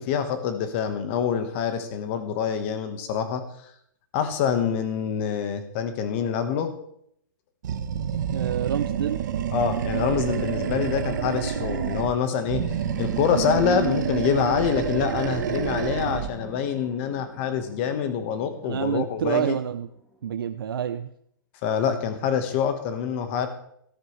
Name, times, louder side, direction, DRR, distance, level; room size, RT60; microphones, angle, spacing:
voice 1, 0.0-3.4 4.1-6.7 9.5-12.7 13.0-19.6 21.6-23.5, left 7 dB, 30° left, 9 dB, 1.3 m, -26 dB
Animal, 7.6-12.2 12.5-16.4, right 8 dB, 55° right, 1.1 m, -28 dB
voice 2, 8.3-9.2 18.6-19.9 20.2-21.1, right 9 dB, 85° right, 9 dB, 0.6 m, -27 dB
sound 1, 12.3-20.5, right 1 dB, ahead, 1.4 m, -45 dB
14.0 x 12.5 x 3.3 m, 0.72 s
hypercardioid pair, 165°, 12 cm